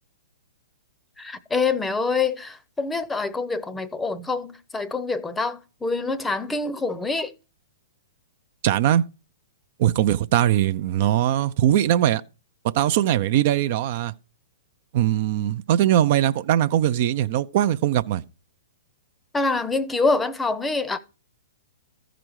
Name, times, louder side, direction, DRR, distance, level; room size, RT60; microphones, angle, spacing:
voice 1, 1.2-7.3 19.3-21.0, left 3 dB, 10° left, 0.7 m, -25 dB
voice 2, 8.6-9.0 9.8-12.2 12.7-14.1 14.9-18.2, right 11 dB, 50° right, 0.4 m, -21 dB
14.0 x 5.0 x 4.7 m
hypercardioid pair, 120°, 0 cm